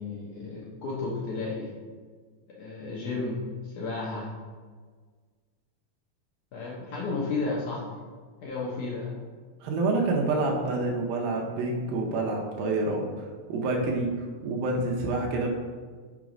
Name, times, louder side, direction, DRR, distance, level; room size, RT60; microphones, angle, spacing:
voice 1, 0.0-1.7 2.6-3.4 3.6-4.3 6.5-7.9 8.4-9.2, left 3 dB, 70° left, -5 dB, 2.0 m, -33 dB
voice 2, 9.6-14.1 14.4-15.5, right 2 dB, 75° right, 0 dB, 2.4 m, -27 dB
6.1 x 4.5 x 5.0 m, 1.5 s
omnidirectional pair, 4.5 m